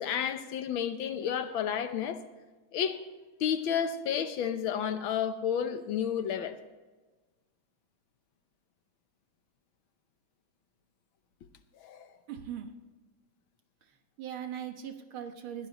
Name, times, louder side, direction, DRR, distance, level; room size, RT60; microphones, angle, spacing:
voice 1, 0.0-2.2 2.7-3.0 3.4-6.6 11.8-12.1, left 8 dB, 75° left, 10 dB, 1.7 m, -31 dB
voice 2, 12.3-12.7 13.9-15.7, right 9 dB, 80° right, 6 dB, 2.1 m, -40 dB
20.5 x 16.0 x 3.0 m, 1.3 s
omnidirectional pair, 2.3 m